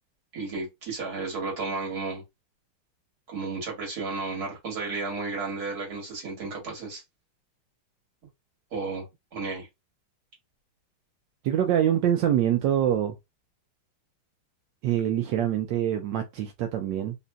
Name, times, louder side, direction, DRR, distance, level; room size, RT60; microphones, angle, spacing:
voice 1, 0.3-2.2 3.3-7.0 8.7-9.1 9.3-9.7, right 3 dB, 50° right, 2.0 m, -33 dB
voice 2, 11.4-13.1 14.8-17.2, right 10 dB, 75° right, 1.1 m, -25 dB
3.9 x 2.5 x 2.2 m
omnidirectional pair, 2.3 m